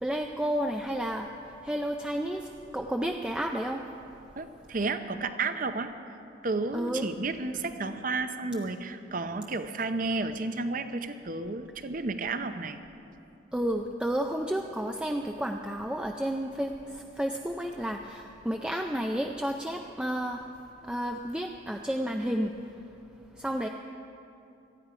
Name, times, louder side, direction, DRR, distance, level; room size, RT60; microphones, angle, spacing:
voice 1, 0.0-3.8 6.7-7.1 13.5-20.5 20.8-22.5 23.4-23.7, equal, 5° right, 2 dB, 0.4 m, -31 dB
voice 2, 4.4-6.2 6.4-12.8, right 3 dB, 45° right, 9 dB, 0.7 m, -32 dB
18.5 x 13.5 x 5.0 m, 2.8 s
head